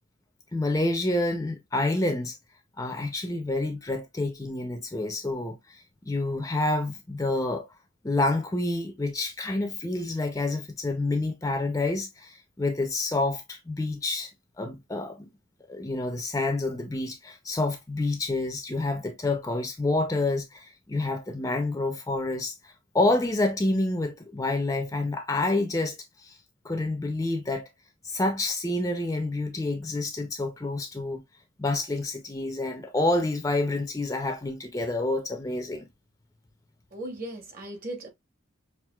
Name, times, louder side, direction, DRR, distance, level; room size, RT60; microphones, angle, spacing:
voice 1, 0.5-2.4 2.8-7.7 8.0-14.3 14.6-15.3 15.7-26.4 26.6-27.7 28.0-31.2 31.6-35.9, left 2 dB, 15° left, 0.4 m, -28 dB
voice 2, 36.9-38.1, right 1 dB, 40° right, 1.0 m, -37 dB
5.7 x 2.5 x 2.2 m
head